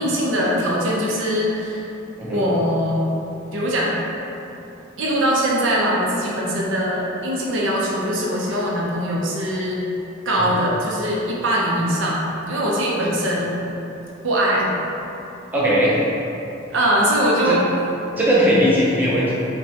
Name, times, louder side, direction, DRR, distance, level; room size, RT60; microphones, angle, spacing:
voice 1, 0.0-1.9 2.3-3.0 3.5-4.0 5.0-9.8 10.3-12.2 12.5-13.5 14.2-14.7 16.7-17.7, equal, 70° right, -4 dB, 0.7 m, -21 dB
voice 2, 15.5-16.0 17.5-17.6 18.2-19.3, equal, 10° right, -8 dB, 0.6 m, -18 dB
5.6 x 2.3 x 2.8 m, 2.9 s
head